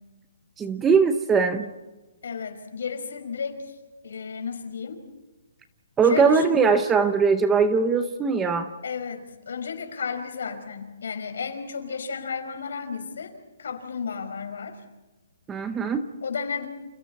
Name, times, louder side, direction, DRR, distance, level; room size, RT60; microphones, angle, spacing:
voice 1, 0.6-1.7 6.0-8.7 15.5-16.1, right 5 dB, 10° right, 9 dB, 0.7 m, -21 dB
voice 2, 2.2-5.0 6.0-6.6 8.8-13.3 13.6-14.8 16.2-16.7, left 5 dB, 60° left, 5 dB, 5.5 m, -33 dB
30.0 x 29.0 x 4.2 m, 1.2 s
hypercardioid pair, 180°, 0 cm